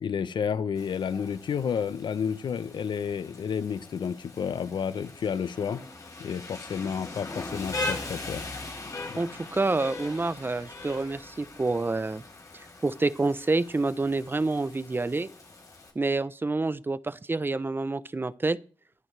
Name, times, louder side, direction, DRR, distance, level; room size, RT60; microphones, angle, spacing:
voice 1, 0.0-5.8 6.2-8.4 9.0-9.2, left 7 dB, 75° left, 0.8 m, -31 dB
Rain, 0.7-15.9, left 2 dB, 50° left, 4.5 m, -40 dB
voice 2, 9.2-12.2 12.5-15.3 16.0-18.6, right 3 dB, 25° right, 0.7 m, -28 dB
23.5 x 11.0 x 3.4 m
cardioid pair, 80°, 8 cm